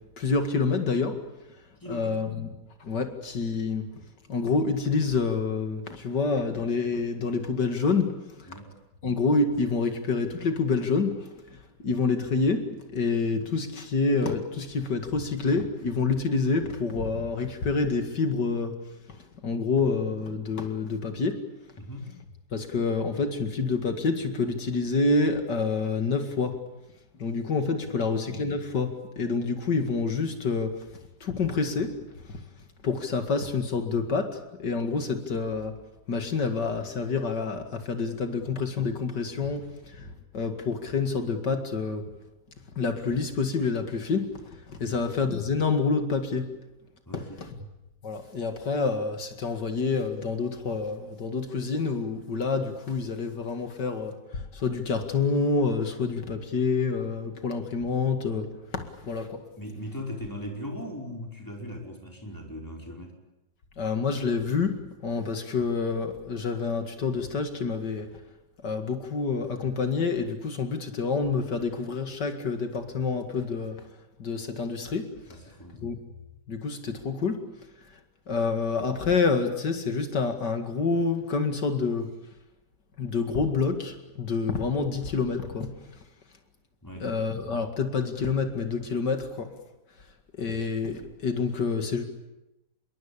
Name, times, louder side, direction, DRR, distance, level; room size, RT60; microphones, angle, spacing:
voice 1, 0.2-1.2 1.9-2.5 2.8-3.8 4.3-8.1 8.4-8.5 9.0-11.2 11.5-18.7 19.1-19.2 19.4-21.4 22.5-26.6 27.2-30.7 31.2-31.9 32.3-32.4 32.8-35.7 36.1-42.0 42.8-46.5 47.1-47.5 48.0-59.4 63.8-64.8 65.0-68.1 68.6-73.8 74.2-75.1 75.8-76.0 76.5-77.4 78.3-82.1 83.0-85.7 87.0-89.5 90.3-92.0, left 4 dB, 70° left, 7 dB, 2.7 m, -27 dB
voice 2, 1.8-2.2 8.5-8.8 21.8-22.1 27.8-28.1 44.8-45.0 47.1-47.5 59.5-63.2 75.3-76.0 86.8-87.1, equal, 10° left, 1 dB, 5.1 m, -39 dB
26.5 x 22.5 x 8.7 m, 0.94 s
omnidirectional pair, 1.9 m